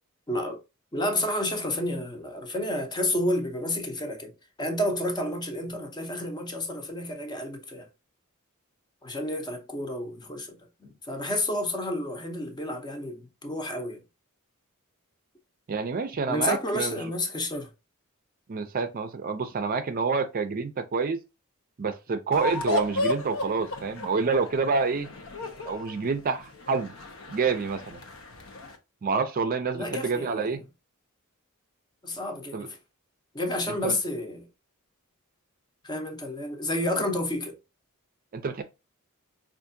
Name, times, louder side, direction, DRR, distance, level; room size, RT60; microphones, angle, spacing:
voice 1, 0.3-0.6 0.9-4.3 4.6-7.9 9.0-14.0 16.3-17.7 29.7-30.6 32.0-32.8 33.3-34.5 35.8-37.6, left 1 dB, 20° left, 0.7 m, -30 dB
voice 2, 15.7-17.1 18.5-21.2 21.8-25.1 25.7-26.9 27.3-28.0 29.0-30.6 32.5-32.7 33.7-34.0 38.3-38.6, right 4 dB, 40° right, 0.4 m, -28 dB
sound 1, 22.3-28.8, left 3 dB, 65° left, 0.7 m, -34 dB
4.6 x 2.5 x 2.6 m
head